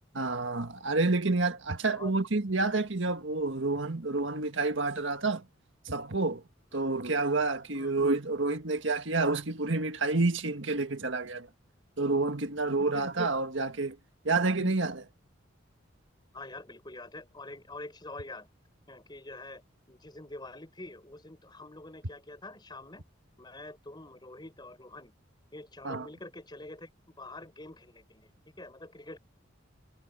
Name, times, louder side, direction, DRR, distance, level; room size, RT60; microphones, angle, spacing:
voice 1, 0.1-5.4 5.9-6.4 6.7-11.5 12.0-14.0 14.2-15.0 25.8-26.1, right 3 dB, 65° right, 1.8 m, -29 dB
voice 2, 16.3-18.5 18.9-19.6 19.9-23.0 23.4-25.1 25.5-26.9 27.2-28.3 28.6-29.2, left 2 dB, 20° left, 6.7 m, -45 dB
head